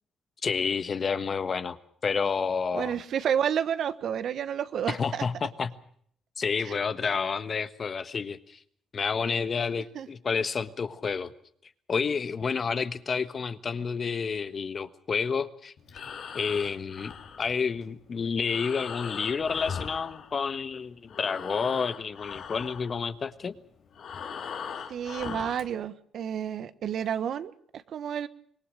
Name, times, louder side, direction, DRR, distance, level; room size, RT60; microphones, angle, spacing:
voice 1, 0.4-3.0 4.9-5.7 6.4-8.6 8.9-11.3 11.9-15.7 16.3-17.1 17.4-23.5, left 5 dB, 45° left, 12 dB, 1.4 m, -30 dB
voice 2, 2.7-5.2 6.6-6.8 9.9-10.1 24.9-28.3, right 8 dB, 65° right, 13 dB, 1.3 m, -30 dB
Breathing, 15.8-20.8 21.0-25.7, left 6 dB, 65° left, 3.0 m, -40 dB
25.0 x 20.0 x 6.5 m, 0.62 s
cardioid pair, 90°, 0 cm